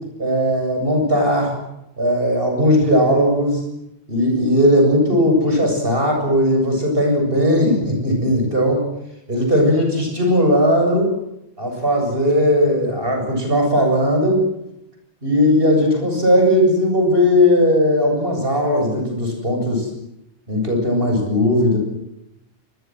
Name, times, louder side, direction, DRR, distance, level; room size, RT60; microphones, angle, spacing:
voice 1, 0.2-1.6 2.0-3.6 4.1-8.9 9.3-11.2 11.6-14.4 15.2-19.9 20.5-21.8, equal, 55° right, 3 dB, 8.2 m, -17 dB
25.0 x 22.0 x 7.9 m, 0.84 s
omnidirectional pair, 1.1 m